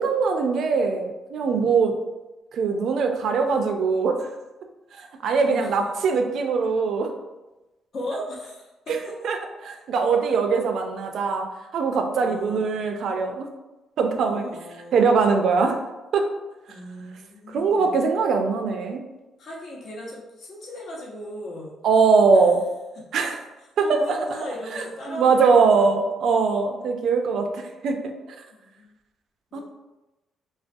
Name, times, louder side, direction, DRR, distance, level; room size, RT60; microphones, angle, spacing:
voice 1, 0.0-2.0 2.5-4.3 5.0-7.1 9.2-9.4 9.6-11.5 11.7-13.5 14.0-14.5 14.9-15.8 16.1-16.3 17.5-19.0 21.8-22.6 23.1-23.4 23.8-24.2 24.7-28.4 29.5-29.6, right 4 dB, 70° right, 5 dB, 0.3 m, -22 dB
voice 2, 1.4-1.7 5.5-5.7 7.9-9.1 12.2-12.7 14.2-15.1 16.7-17.9 19.4-21.7 22.3-22.4 23.0-23.1 23.8-25.9 28.6-28.9 29.5-29.6, left 1 dB, 60° left, -3 dB, 0.7 m, -37 dB
2.3 x 2.2 x 2.5 m, 1.0 s
cardioid pair, 90°, 0 cm